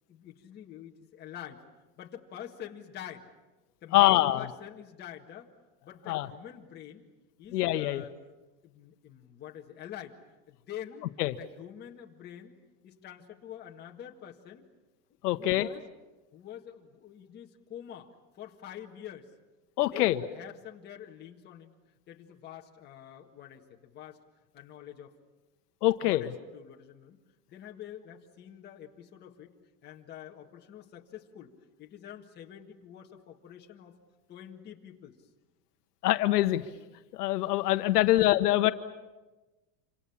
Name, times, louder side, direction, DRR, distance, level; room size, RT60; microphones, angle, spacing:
voice 1, 0.1-1.6 2.0-3.3 3.8-5.5 5.8-7.0 7.4-8.3 8.6-10.2 10.5-11.1 11.4-14.6 15.3-15.9 16.3-18.1 18.3-19.3 19.9-21.7 22.1-24.2 24.5-25.1 26.0-27.2 27.5-29.6 29.8-31.5 31.8-34.0 34.3-35.3 38.0-38.2, left 10 dB, 20° left, 0 dB, 1.8 m, -46 dB
voice 2, 3.9-4.5 6.1-6.3 7.5-8.0 11.2-11.3 15.2-15.7 19.8-20.2 25.8-26.3 36.0-36.6 37.1-38.7, left 16 dB, 75° left, 10 dB, 1.2 m, -24 dB
27.5 x 26.5 x 7.3 m, 1.2 s
supercardioid pair, 170°, 48 cm